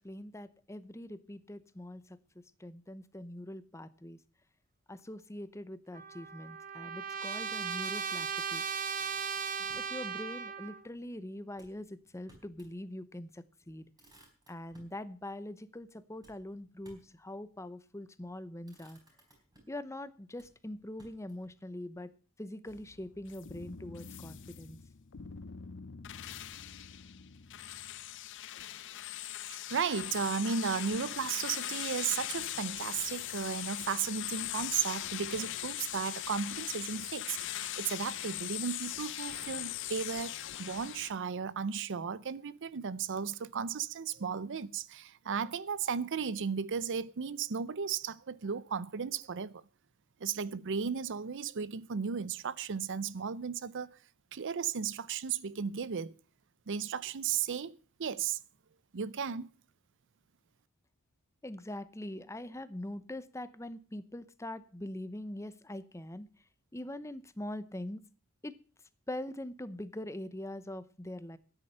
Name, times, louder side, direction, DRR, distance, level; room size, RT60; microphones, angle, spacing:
voice 1, 0.0-2.2 2.6-4.2 4.9-8.6 9.6-13.9 14.5-19.0 19.7-22.1 22.4-24.8 61.4-66.3 66.7-68.0 68.4-68.5 69.1-71.4, left 1 dB, 15° left, 0.8 m, -43 dB
Trumpet, 5.9-10.8, right 6 dB, 35° right, 1.1 m, -37 dB
Motor vehicle (road), 8.9-10.0 11.5-12.8 13.2-13.3 13.6-15.0 16.2-17.2 18.0-18.3 18.6-19.9 20.3-21.6, right 1 dB, 20° right, 4.4 m, -62 dB
sound 1, 22.7-41.1, left 13 dB, 55° left, 0.7 m, -40 dB
voice 2, 29.5-49.6 50.2-53.9 54.3-56.1 56.7-58.4 58.9-59.5, right 6 dB, 55° right, 0.5 m, -35 dB
13.0 x 9.8 x 5.6 m
head